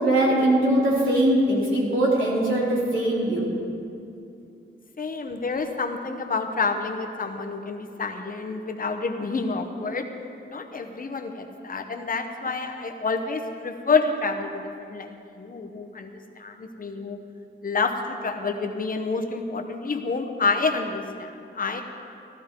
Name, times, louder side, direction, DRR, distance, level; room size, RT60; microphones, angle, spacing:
voice 1, 0.0-3.5, right 1 dB, 75° right, -5 dB, 3.2 m, -21 dB
voice 2, 5.0-10.1 10.5-17.2 17.6-21.8, left 4 dB, 45° left, 4 dB, 0.8 m, -28 dB
15.0 x 14.0 x 3.7 m, 2.6 s
wide cardioid pair, 175°, 20 cm